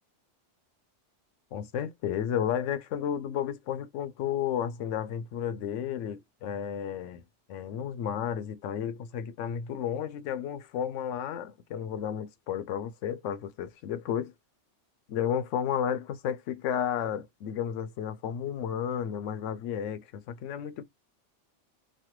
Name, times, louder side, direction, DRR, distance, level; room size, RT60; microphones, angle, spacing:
voice 1, 1.5-7.2 7.5-14.3 15.1-20.8, left 9 dB, 80° left, 0.9 m, -32 dB
3.2 x 2.2 x 2.9 m
omnidirectional pair, 1.3 m